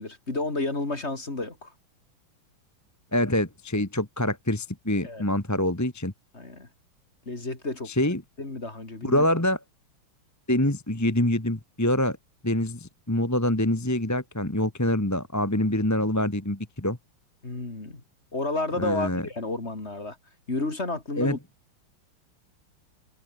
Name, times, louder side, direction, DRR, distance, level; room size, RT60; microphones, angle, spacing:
voice 1, 0.0-1.7 5.0-5.2 6.3-6.7 7.2-7.9 8.4-9.2 17.4-18.0 18.3-20.2 20.5-21.4, left 2 dB, 30° left, 3.5 m, -31 dB
voice 2, 3.1-6.1 7.9-8.2 9.0-9.6 10.5-12.2 12.4-17.0 18.8-19.3 21.2-21.4, left 1 dB, 10° left, 1.8 m, -25 dB
omnidirectional pair, 2.3 m